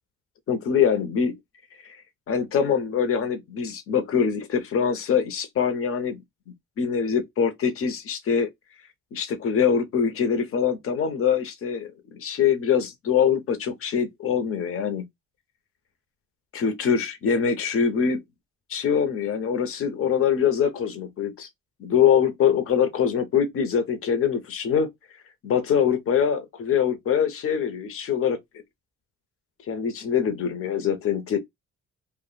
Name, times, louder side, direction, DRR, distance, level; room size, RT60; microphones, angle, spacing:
voice 1, 0.5-1.4 1.8-2.0 2.3-6.2 6.8-8.5 9.1-15.0 16.5-18.2 18.7-21.5 21.8-24.9 25.4-28.4 29.7-31.4, left 7 dB, 45° left, 0.7 m, -23 dB
2.5 x 2.1 x 3.8 m
cardioid pair, 90°, 30 cm